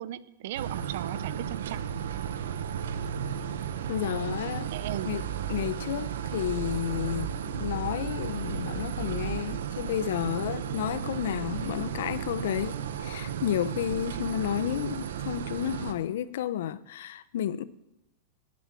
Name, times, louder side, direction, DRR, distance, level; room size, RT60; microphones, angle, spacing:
voice 1, 0.0-1.8 4.7-5.1, right 13 dB, 65° right, 0.7 m, -36 dB
sound 1, 0.6-15.9, right 8 dB, 85° right, 1.1 m, -34 dB
voice 2, 3.9-4.7 5.0-17.6, left 10 dB, 75° left, 0.7 m, -31 dB
15.5 x 8.5 x 7.7 m
supercardioid pair, 135°, 0 cm